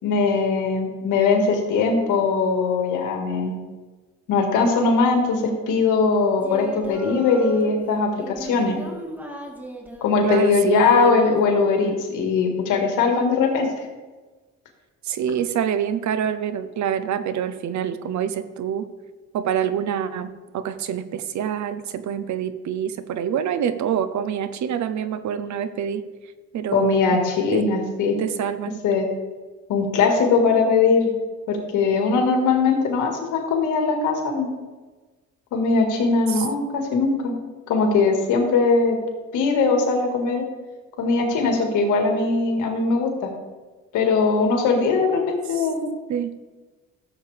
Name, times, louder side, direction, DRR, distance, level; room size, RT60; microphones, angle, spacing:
voice 1, 0.0-3.5 4.3-8.8 10.0-13.7 26.7-28.2 28.8-29.1 29.7-31.1 31.5-34.5 35.5-37.3 37.7-39.0 39.3-40.5 41.0-43.3 43.9-45.9, left 4 dB, 90° left, 3 dB, 2.0 m, -20 dB
Singing, 6.4-7.7 8.2-10.2 11.0-11.6, equal, 5° right, 1.8 m, -35 dB
voice 2, 10.2-11.2 15.1-18.9 19.3-26.0 26.5-27.2 27.5-27.6 28.2-28.8 36.3-36.4 45.6-45.7 46.1-46.3, right 8 dB, 70° right, 12 dB, 0.8 m, -26 dB
14.5 x 7.5 x 3.5 m, 1.3 s
cardioid pair, 90°, 30 cm